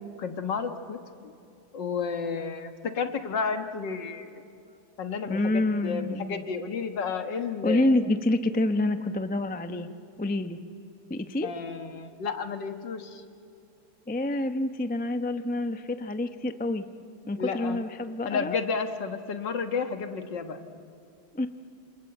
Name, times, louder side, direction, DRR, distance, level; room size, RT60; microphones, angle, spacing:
voice 1, 0.2-1.0 1.2-1.3 1.7-4.3 5.0-7.9 11.4-13.2 17.4-17.8 18.3-20.6, left 5 dB, 65° left, 7 dB, 2.1 m, -32 dB
voice 2, 5.3-6.4 7.6-9.9 10.2-10.6 11.1-11.5 14.1-16.8 17.3-18.6 21.3-21.5, left 2 dB, 10° left, 9 dB, 0.4 m, -27 dB
28.0 x 27.0 x 7.9 m, 2.6 s
omnidirectional pair, 2.1 m